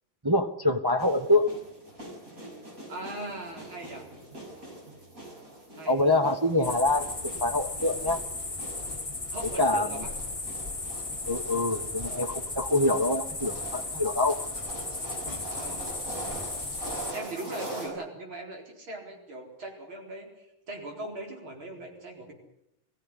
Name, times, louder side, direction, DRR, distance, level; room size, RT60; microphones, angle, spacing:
voice 1, 0.2-1.5 5.9-8.2 9.6-10.0 11.3-14.4 15.7-15.8, left 2 dB, 20° right, 5 dB, 0.6 m, -25 dB
sound 1, 1.0-17.9, right 2 dB, 40° right, 7.1 m, -43 dB
voice 2, 2.9-4.1 5.8-6.0 9.3-10.1 15.5-15.9 17.1-22.3, right 2 dB, 80° right, 1 dB, 5.3 m, -40 dB
sound 2, 6.6-17.1, left 3 dB, 15° left, 1.8 m, -36 dB
22.5 x 15.5 x 9.9 m, 0.83 s
omnidirectional pair, 2.2 m